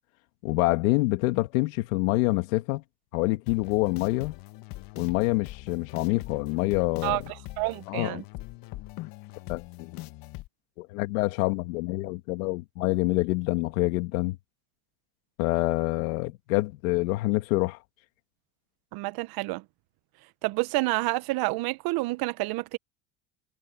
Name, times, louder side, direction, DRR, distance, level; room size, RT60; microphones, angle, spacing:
voice 1, 0.4-2.8 3.1-4.4 5.0-7.2 7.9-8.2 9.5-10.0 10.8-14.4 15.4-17.8, left 21 dB, 85° left, 2.1 m, -26 dB
sound 1, 3.5-10.5, left 18 dB, 60° left, 1.4 m, -42 dB
voice 2, 7.6-8.2 18.9-19.6 20.4-22.8, right 22 dB, 65° right, 1.1 m, -28 dB
supercardioid pair, 105°, 40 cm